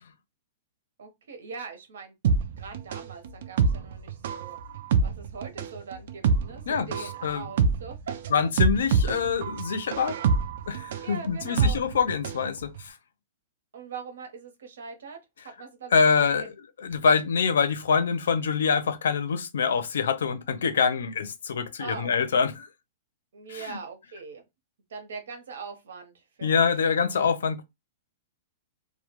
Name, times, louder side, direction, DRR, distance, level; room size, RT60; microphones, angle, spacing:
voice 1, 1.0-2.1 2.6-4.6 5.0-8.1 11.0-11.8 13.7-15.2 15.6-16.5 21.8-22.2 23.3-24.4 24.9-26.7, right 5 dB, 85° right, 0.8 m, -41 dB
sound 1, 2.2-12.5 12.8-12.9, right 5 dB, 60° right, 0.4 m, -26 dB
voice 2, 8.3-10.2 10.7-12.9 15.9-16.5 16.8-22.7 23.5-23.8 26.4-27.6, left 6 dB, 90° left, 0.5 m, -25 dB
2.2 x 2.1 x 2.9 m
hypercardioid pair, 160°, 0 cm